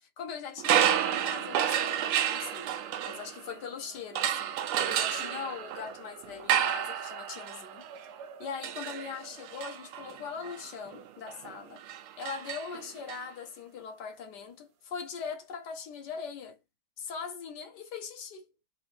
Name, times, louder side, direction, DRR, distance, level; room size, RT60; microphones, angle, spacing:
voice 1, 0.0-2.7 3.0-7.9 8.4-11.8 12.2-16.6 17.0-18.5, left 6 dB, 55° left, 1.4 m, -41 dB
sound 1, 0.6-3.7 4.1-13.2, right 10 dB, 80° right, 1.6 m, -31 dB
4.4 x 3.3 x 3.3 m
omnidirectional pair, 2.4 m